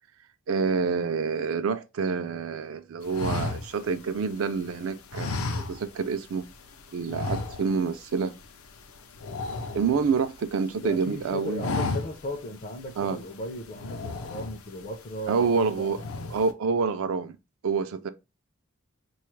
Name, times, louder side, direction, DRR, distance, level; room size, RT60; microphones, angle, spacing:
voice 1, 0.5-6.5 6.9-8.3 9.7-11.7 13.0-13.2 15.3-16.0 16.3-17.4 17.6-18.1, right 5 dB, 70° right, 0.4 m, -27 dB
sound 1, 3.1-4.6 5.1-6.2 6.5-6.7 7.1-8.0 8.2-8.5 8.7-10.5 10.9-11.2 11.5-12.4 12.8-12.9 13.7-14.8 15.3-15.6 15.9-16.5, left 3 dB, 80° left, 0.6 m, -33 dB
voice 2, 10.8-15.9, left 1 dB, 35° left, 0.4 m, -36 dB
4.1 x 2.3 x 3.1 m
head